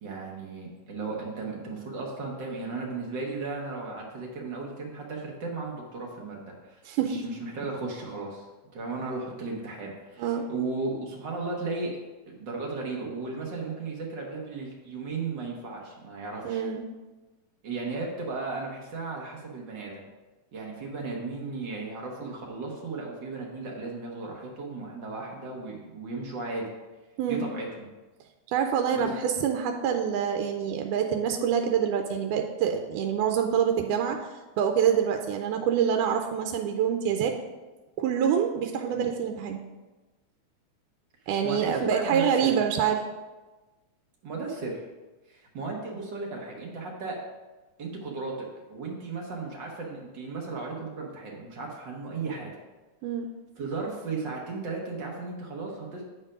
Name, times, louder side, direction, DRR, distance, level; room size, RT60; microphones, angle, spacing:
voice 1, 0.0-8.5 8.7-11.9 12.3-16.6 17.6-20.0 20.5-26.6 27.3-27.7 28.9-29.1 38.9-39.0 41.4-42.6 44.2-44.9 45.3-47.2 47.8-52.5 53.6-56.0, right 3 dB, 65° right, -1 dB, 1.1 m, -35 dB
voice 2, 16.4-16.8 27.2-27.5 28.5-34.3 34.6-37.4 38.0-39.6 41.3-43.0 53.0-53.3, right 8 dB, 90° right, 4 dB, 2.1 m, -26 dB
8.8 x 4.5 x 4.9 m, 1.2 s
omnidirectional pair, 3.6 m